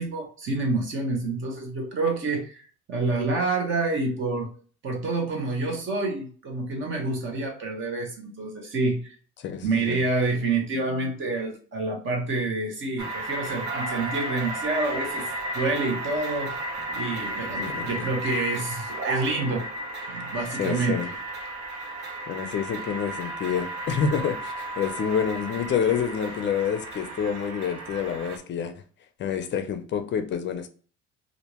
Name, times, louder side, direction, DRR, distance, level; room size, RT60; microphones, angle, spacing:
voice 1, 0.0-4.5 4.8-9.1 9.6-15.3 15.5-16.6 16.9-19.6 20.1-21.0, right 3 dB, 45° right, 1.0 m, -28 dB
voice 2, 9.4-10.0 17.6-17.9 20.6-21.1 22.3-28.7 29.2-30.7, left 7 dB, 40° left, 0.5 m, -28 dB
sound 1, 13.0-28.4, right 1 dB, 75° right, 1.0 m, -34 dB
3.5 x 2.5 x 2.9 m
cardioid pair, 160°, 29 cm